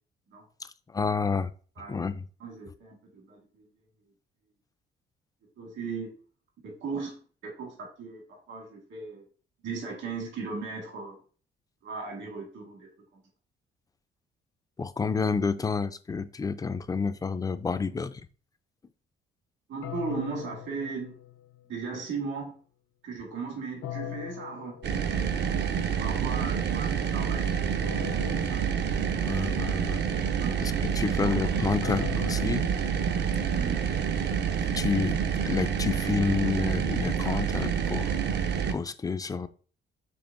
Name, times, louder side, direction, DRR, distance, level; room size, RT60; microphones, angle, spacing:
voice 1, 0.6-1.5 1.9-2.2 14.8-18.2 29.2-30.0 30.6-32.6 34.7-35.2 35.5-38.1 38.7-39.5, left 5 dB, 20° left, 12 dB, 0.3 m, -29 dB
voice 2, 2.4-3.6 5.6-6.1 6.6-7.2 7.4-9.2 9.6-11.2 11.8-13.2 19.7-21.2 21.7-22.5 23.0-24.8 25.1-25.7 26.0-28.8 30.4-30.7 31.0-31.3 33.2-33.9, right 4 dB, 75° right, -1 dB, 1.7 m, -37 dB
sound 1, 19.8-21.9 23.8-25.7 27.8-29.7 31.8-34.0, left 12 dB, 75° left, 0.5 m, -42 dB
sound 2, 24.8-38.7, right 7 dB, 60° right, 0.5 m, -28 dB
6.1 x 3.2 x 2.5 m, 0.41 s
cardioid pair, 90°, 20 cm